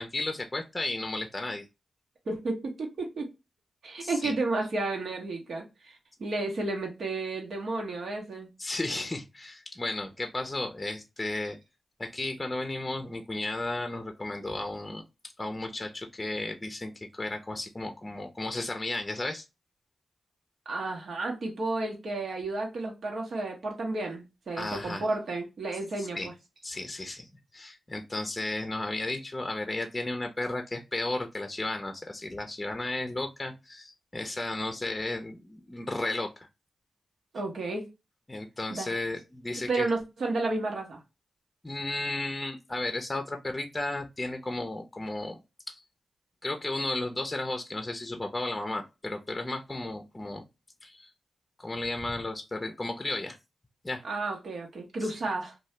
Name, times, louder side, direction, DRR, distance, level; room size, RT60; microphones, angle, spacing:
voice 1, 0.0-1.7 4.0-4.3 8.6-11.6 12.0-15.0 15.4-19.4 24.6-25.0 26.0-26.3 26.6-27.3 27.5-36.5 38.3-39.9 41.6-45.4 45.7-45.8 46.4-50.4 50.8-51.1 51.6-53.4 53.8-54.0 55.0-55.1, left 2 dB, 25° left, 0.6 m, -34 dB
voice 2, 2.3-3.3 3.8-8.5 20.7-26.3 37.3-37.9 38.7-38.9 39.7-41.0 54.0-55.5, right 2 dB, 70° right, 1.0 m, -32 dB
2.7 x 2.3 x 3.1 m
cardioid pair, 45°, 0 cm